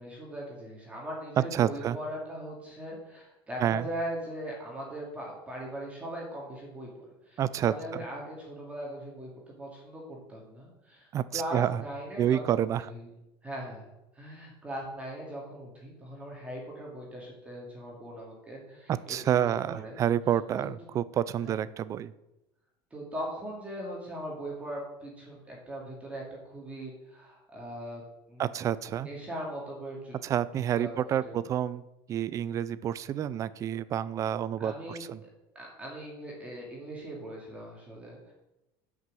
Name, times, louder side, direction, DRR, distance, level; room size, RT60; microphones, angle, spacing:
voice 1, 0.0-9.3 9.6-13.1 13.4-13.9 14.1-20.0 21.4-21.5 22.9-28.0 28.3-28.5 28.9-30.2 30.5-31.4 34.6-35.3 35.5-38.3, right 1 dB, 10° right, -3 dB, 2.3 m, -40 dB
voice 2, 1.5-2.0 3.6-3.9 7.4-7.7 11.1-11.8 12.2-12.9 18.9-22.1 28.4-29.1 30.2-31.8 32.1-35.2, right 10 dB, 25° right, 17 dB, 0.4 m, -29 dB
9.7 x 6.1 x 7.7 m, 0.93 s
cardioid pair, 170°, 12 cm